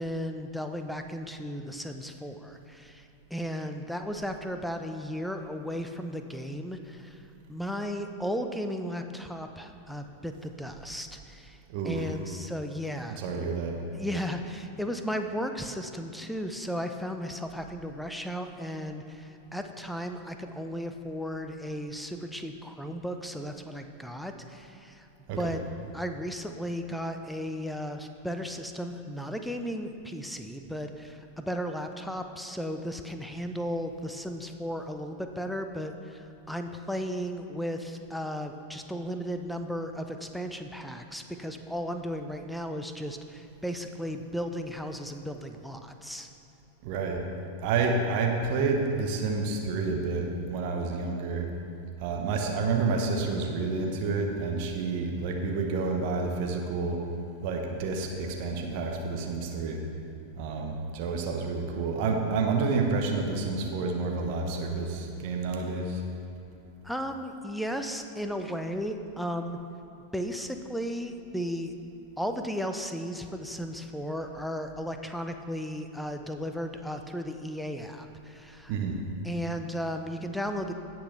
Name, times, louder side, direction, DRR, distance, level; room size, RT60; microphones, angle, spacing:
voice 1, 0.0-7.2 7.5-11.6 11.8-13.2 13.9-25.1 25.4-25.6 25.9-46.3 66.8-69.6 70.1-71.7 72.2-78.7 79.2-80.7, equal, ahead, 6 dB, 0.6 m, -35 dB
voice 2, 11.7-12.1 13.1-13.8 25.3-25.6 46.8-47.3 47.6-51.5 52.0-57.0 57.4-59.8 60.4-66.0 78.7-79.0, right 4 dB, 45° right, 2 dB, 1.1 m, -29 dB
17.5 x 6.0 x 3.3 m, 2.8 s
figure-of-eight pair, 90°, 0 cm